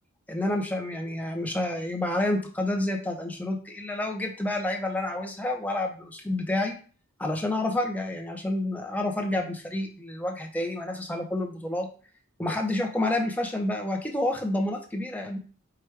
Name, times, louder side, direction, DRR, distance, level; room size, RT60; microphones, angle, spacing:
voice 1, 0.3-6.8 7.2-11.9 12.4-15.4, left 1 dB, 10° left, 2 dB, 0.6 m, -29 dB
4.8 x 2.2 x 4.5 m, 0.40 s
head